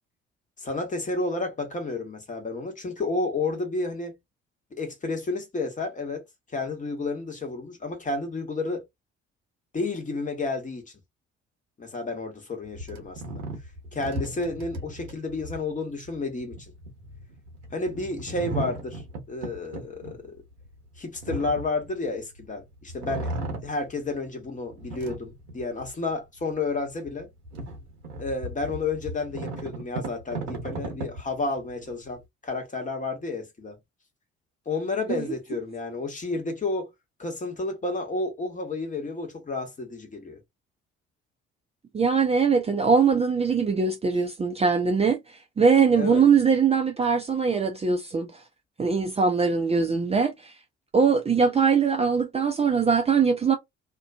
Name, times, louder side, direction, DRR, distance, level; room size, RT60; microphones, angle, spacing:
voice 1, 0.6-4.2 4.7-6.2 6.5-8.8 9.7-10.9 11.8-13.4 13.9-16.7 17.7-19.0 19.3-20.4 21.0-27.3 28.2-33.8 34.7-36.9 37.2-40.4 45.9-46.2, left 3 dB, 20° left, 1.0 m, -31 dB
sound 1, 12.7-22.5 22.9-24.3 24.7-26.1 26.5-26.6 27.1-32.2, right 2 dB, 75° right, 0.9 m, -36 dB
voice 2, 41.9-48.3 48.8-50.5 50.9-53.6, right 5 dB, 20° right, 0.5 m, -22 dB
2.4 x 2.2 x 2.4 m
figure-of-eight pair, 50°, 34 cm